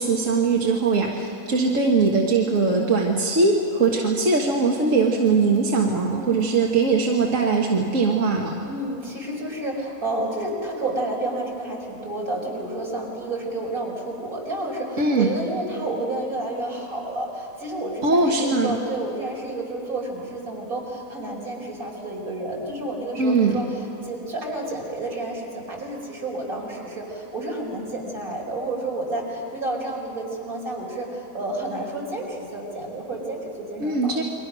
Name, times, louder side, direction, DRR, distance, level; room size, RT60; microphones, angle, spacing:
voice 1, 0.0-8.5 15.0-15.3 18.0-18.8 23.2-23.6 33.8-34.2, right 4 dB, 60° right, 0 dB, 1.8 m, -21 dB
voice 2, 4.5-4.8 6.1-6.5 8.7-34.2, right 2 dB, 75° right, -2 dB, 5.3 m, -30 dB
29.5 x 23.0 x 6.2 m, 2.8 s
omnidirectional pair, 1.5 m